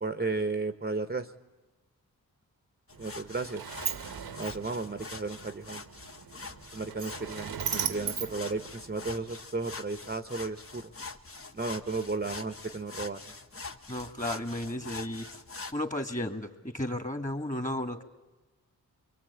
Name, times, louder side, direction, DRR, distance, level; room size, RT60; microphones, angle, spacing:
voice 1, 0.0-1.3 3.0-3.7 4.4-5.8 6.7-10.9 11.5-13.3, right 3 dB, 25° right, 10 dB, 1.2 m, -34 dB
sound 1, 2.9-15.7, left 3 dB, 35° left, 1.5 m, -44 dB
Sliding door, 2.9-9.3, right 8 dB, 70° right, 1.2 m, -38 dB
voice 2, 13.9-15.4 15.7-18.0, left 1 dB, 20° left, 8 dB, 2.6 m, -34 dB
23.5 x 22.5 x 8.6 m, 1.2 s
supercardioid pair, 45°, 39 cm